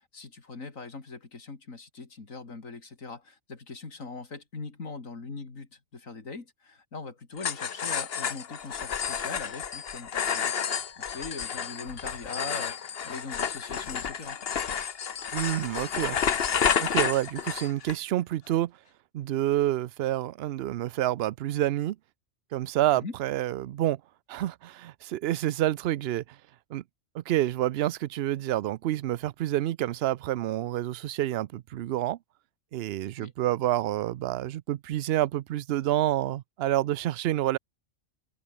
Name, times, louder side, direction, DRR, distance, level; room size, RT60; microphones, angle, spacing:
voice 1, 0.1-14.4 22.9-23.2 33.2-33.3, left 4 dB, 85° left, 3.3 m, -41 dB
sound 1, 7.4-18.0, left 7 dB, 50° left, 1.1 m, -30 dB
voice 2, 15.3-16.2 16.8-18.7 19.1-22.0 22.5-24.0 24.3-26.2 26.7-26.8 27.1-32.2 32.7-37.6, right 14 dB, 60° right, 0.7 m, -28 dB
omnidirectional pair, 1.4 m